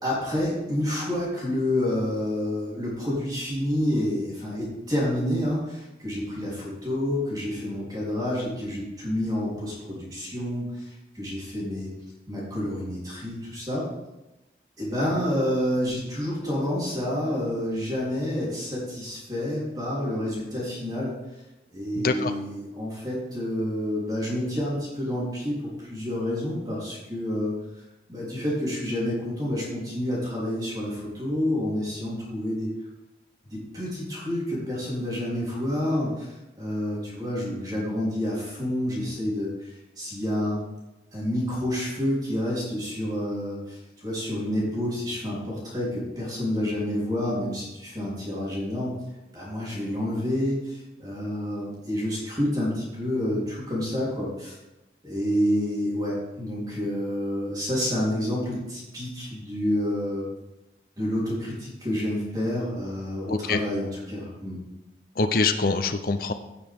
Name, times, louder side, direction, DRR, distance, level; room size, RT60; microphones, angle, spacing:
voice 1, 0.0-11.9 12.3-13.8 14.8-21.1 21.7-27.6 28.1-32.7 33.5-40.6 41.1-49.0 49.3-54.6 55.0-60.3 61.0-64.6, left 1 dB, 20° right, -6 dB, 3.6 m, -29 dB
voice 2, 22.0-22.3 63.3-63.6 65.2-66.3, left 3 dB, 55° left, 7 dB, 0.7 m, -24 dB
16.0 x 6.8 x 3.6 m, 0.98 s
head